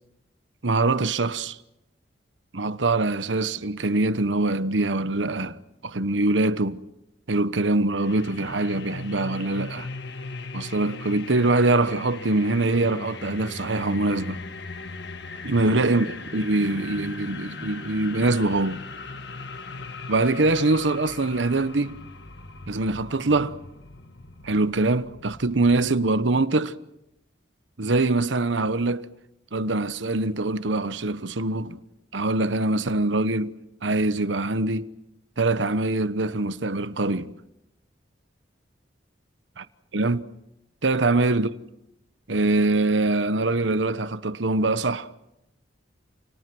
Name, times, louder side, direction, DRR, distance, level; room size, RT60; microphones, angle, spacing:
voice 1, 0.6-1.6 2.5-6.8 7.3-9.9 10.5-14.4 15.4-18.8 20.1-22.0 22.7-23.6 24.4-26.7 27.8-29.1 29.5-31.8 32.1-33.6 33.8-34.9 35.4-37.3 39.6-39.7 39.9-40.3 40.8-41.5 42.3-45.1, right 2 dB, 85° right, 1.1 m, -23 dB
sound 1, 8.0-25.9, left 3 dB, 65° left, 1.6 m, -39 dB
29.5 x 28.5 x 6.2 m
head